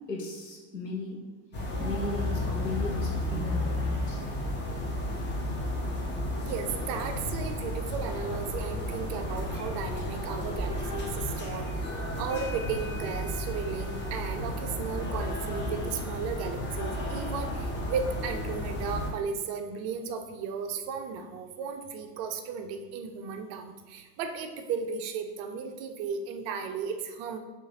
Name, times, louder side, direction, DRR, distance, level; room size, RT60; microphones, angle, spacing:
voice 1, 0.1-1.3 1.8-4.2, left 2 dB, 90° left, -1 dB, 0.9 m, -36 dB
sound 1, 1.5-19.1, left 1 dB, 20° left, 0.9 m, -33 dB
voice 2, 6.4-27.4, right 6 dB, 35° right, 6 dB, 0.5 m, -35 dB
6.4 x 2.5 x 2.8 m, 1.2 s
figure-of-eight pair, 80°, 48 cm